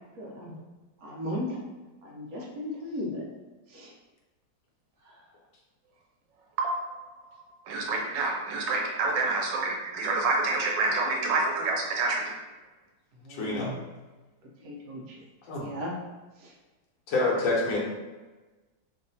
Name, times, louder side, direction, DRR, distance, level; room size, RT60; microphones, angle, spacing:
voice 1, 0.2-0.5 1.0-1.5 2.2-3.2 13.4-13.8 14.7-15.0 15.6-15.9, left 1 dB, 65° right, -2 dB, 0.9 m, -35 dB
voice 2, 6.6-7.0 7.7-12.3, right 3 dB, 80° right, -1 dB, 1.4 m, -27 dB
voice 3, 13.3-13.7 15.5-15.7 17.1-17.8, left 2 dB, 75° left, -4 dB, 1.4 m, -27 dB
3.1 x 2.6 x 3.9 m, 1.2 s
omnidirectional pair, 2.0 m